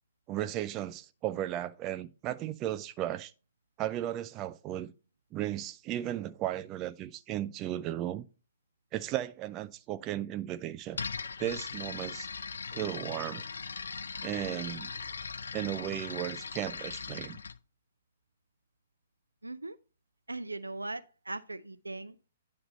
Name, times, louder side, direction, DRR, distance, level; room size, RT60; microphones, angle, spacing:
voice 1, 0.3-3.3 3.8-4.9 5.3-8.3 8.9-11.0 11.4-12.3 12.7-13.4 14.2-14.9 15.5-17.4, right 13 dB, 25° right, 0.4 m, -35 dB
sound 1, 10.9-17.6, left 5 dB, 70° left, 0.4 m, -39 dB
voice 2, 19.4-19.8 20.3-22.2, right 2 dB, 85° right, 0.4 m, -39 dB
9.9 x 3.3 x 5.3 m
figure-of-eight pair, 120°, 0 cm